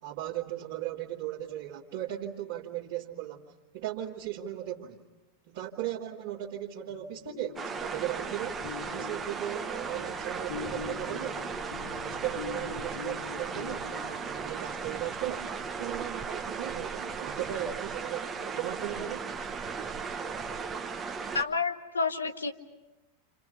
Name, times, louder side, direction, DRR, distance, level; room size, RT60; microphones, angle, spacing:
voice 1, 0.0-5.0 5.5-11.5 11.9-15.5 15.8-19.3, right 12 dB, 50° right, -4 dB, 2.3 m, -37 dB
sound 1, 6.9-14.8, left 9 dB, 60° left, 1.1 m, -44 dB
sound 2, 7.6-21.4, right 5 dB, 20° right, 1.4 m, -36 dB
voice 2, 21.3-22.5, left 4 dB, 75° left, 7 dB, 1.6 m, -29 dB
29.0 x 28.0 x 5.6 m, 0.99 s
figure-of-eight pair, 90°, 0 cm